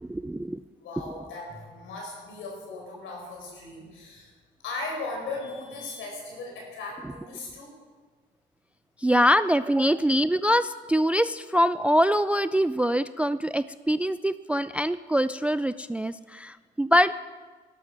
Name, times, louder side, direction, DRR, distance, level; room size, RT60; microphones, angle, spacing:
voice 1, 0.0-0.6 9.0-17.2, equal, 5° right, 14 dB, 0.3 m, -24 dB
voice 2, 0.8-4.3 4.6-7.7, left 3 dB, 85° left, -1 dB, 4.7 m, -37 dB
12.5 x 11.5 x 6.0 m, 1.4 s
cardioid pair, 90°, 20 cm